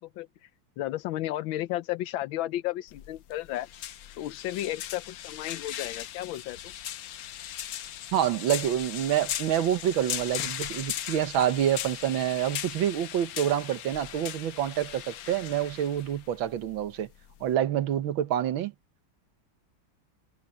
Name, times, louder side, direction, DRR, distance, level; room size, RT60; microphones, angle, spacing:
voice 1, 0.2-0.5 0.8-3.7 4.2-6.7, left 14 dB, 90° left, 1.5 m, -33 dB
sound 1, 2.9-17.5, left 11 dB, 65° left, 1.0 m, -38 dB
voice 2, 8.1-17.1 17.4-18.7, right 10 dB, 90° right, 1.8 m, -27 dB
omnidirectional pair, 2.1 m